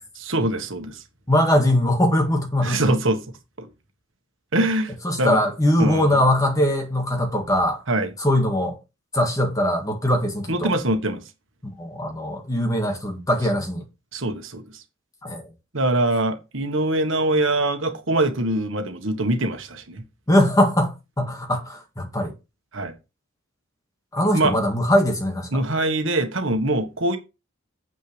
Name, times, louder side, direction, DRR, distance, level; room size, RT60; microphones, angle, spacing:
voice 1, 0.1-1.0 2.6-3.2 3.6-3.7 4.5-4.9 5.2-5.4 5.8-6.2 7.9-8.1 10.5-11.2 14.1-14.8 15.7-20.0 22.7-22.9 24.3-24.5 25.5-27.2, right 2 dB, 65° right, 1.5 m, -23 dB
voice 2, 1.3-3.0 5.0-7.8 8.2-8.8 9.1-10.7 11.8-13.8 15.2-15.5 20.3-22.3 24.1-25.6, left 1 dB, 15° left, 1.8 m, -21 dB
9.1 x 7.6 x 3.3 m
head